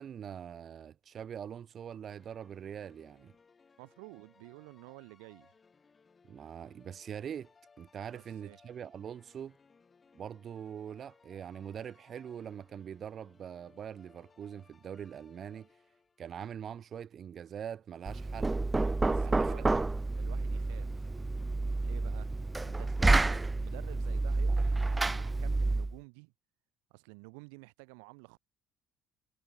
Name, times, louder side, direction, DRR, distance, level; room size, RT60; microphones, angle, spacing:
voice 1, 0.0-3.3 6.3-7.5 7.8-9.6 10.1-15.7 16.2-18.6 19.1-19.8, right 8 dB, 45° right, 1.8 m, -43 dB
sound 1, 2.1-16.4, left 5 dB, 30° left, 6.5 m, -64 dB
voice 2, 3.8-5.5 8.1-8.6 19.1-19.9 20.1-21.0 21.8-22.3 22.6-26.3 26.9-28.4, right 38 dB, 85° right, 1.4 m, -51 dB
Knock, 18.1-26.0, right 2 dB, 15° right, 0.4 m, -29 dB
supercardioid pair, 85°, 0 cm